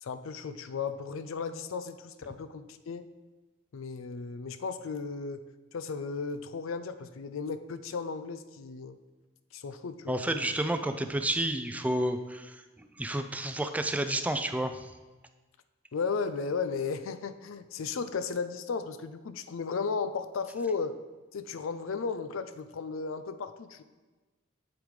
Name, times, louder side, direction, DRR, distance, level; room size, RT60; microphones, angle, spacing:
voice 1, 0.0-3.1 3.7-5.4 5.7-9.0 9.5-10.5 15.9-21.0 21.3-23.8, left 5 dB, 85° left, 11 dB, 0.5 m, -35 dB
voice 2, 10.1-14.9, right 1 dB, 10° right, 8 dB, 0.4 m, -31 dB
8.5 x 7.9 x 3.2 m, 1.3 s
head